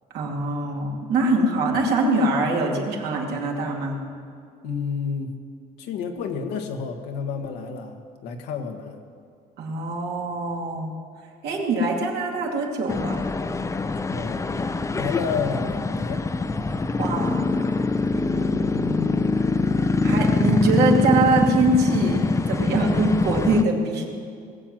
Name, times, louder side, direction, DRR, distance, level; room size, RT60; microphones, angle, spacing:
voice 1, 0.1-4.0 9.6-10.9 11.4-13.2 17.0-17.5 18.1-19.1 20.0-24.0, right 2 dB, 75° right, -1 dB, 2.7 m, -23 dB
voice 2, 4.6-5.3 5.8-9.0 14.1-16.2, left 6 dB, 85° left, 4 dB, 1.6 m, -30 dB
sound 1, 12.9-23.6, left 3 dB, 20° left, 0.6 m, -24 dB
20.0 x 7.7 x 7.7 m, 2.3 s
cardioid pair, 110°, 17 cm